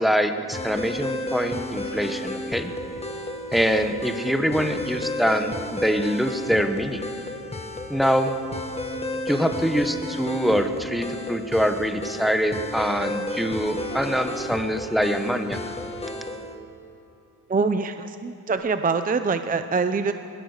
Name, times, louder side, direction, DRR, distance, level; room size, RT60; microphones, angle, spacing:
voice 1, 0.0-2.7 3.5-7.0 7.9-8.4 9.3-15.6, equal, ahead, 7 dB, 1.1 m, -24 dB
sound 1, 0.5-16.6, left 1 dB, 15° left, 1.4 m, -32 dB
voice 2, 17.5-20.1, right 4 dB, 20° right, 9 dB, 0.6 m, -24 dB
21.5 x 19.5 x 6.5 m, 2.8 s
wide cardioid pair, 140°, 38 cm